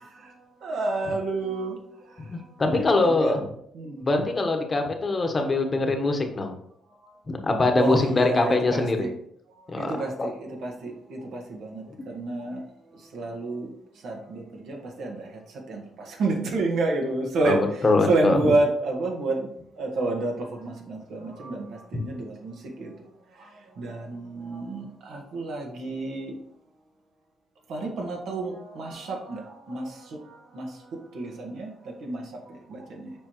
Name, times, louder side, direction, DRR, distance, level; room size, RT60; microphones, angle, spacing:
voice 1, 0.0-0.3 0.6-1.8 2.7-3.3 3.7-4.1 7.8-9.1 9.8-12.6 12.9-13.7 14.0-15.4 15.7-17.6 18.1-19.5 19.8-22.9 23.3-26.3 27.7-33.1, right 2 dB, 75° right, 1 dB, 1.5 m, -30 dB
voice 2, 2.3-3.5 4.0-6.5 7.3-9.1 9.7-9.9 10.2-10.3 17.4-18.4, left 2 dB, 30° left, 4 dB, 1.2 m, -23 dB
7.0 x 4.9 x 3.0 m, 0.70 s
cardioid pair, 90°, 0 cm